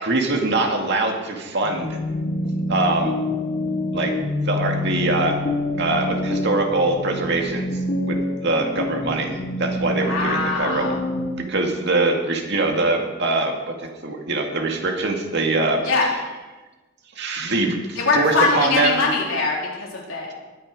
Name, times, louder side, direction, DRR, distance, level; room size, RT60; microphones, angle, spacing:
voice 1, 0.0-2.0 2.7-3.1 3.9-4.1 4.5-5.4 5.8-7.8 8.1-8.2 8.4-9.3 9.6-10.9 11.5-15.9 17.2-19.0, right 2 dB, 55° right, 2 dB, 2.1 m, -23 dB
sound 1, 1.6-11.6, left 1 dB, 40° left, 1.3 m, -27 dB
voice 2, 9.9-11.0 15.8-16.1 18.0-20.3, left 3 dB, 70° left, -3 dB, 4.0 m, -22 dB
20.5 x 9.0 x 4.8 m, 1.2 s
head